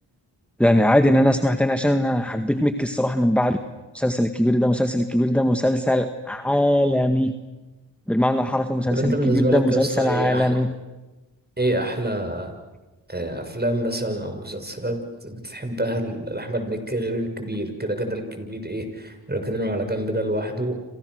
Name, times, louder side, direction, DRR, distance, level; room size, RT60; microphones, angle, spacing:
voice 1, 0.6-3.6 3.9-7.3 8.1-10.7, left 1 dB, 5° left, 7 dB, 1.8 m, -20 dB
voice 2, 8.9-10.6 11.6-12.5 13.1-20.8, right 1 dB, 20° right, 6 dB, 6.6 m, -27 dB
29.5 x 27.0 x 6.6 m, 1.1 s
supercardioid pair, 40°, 46 cm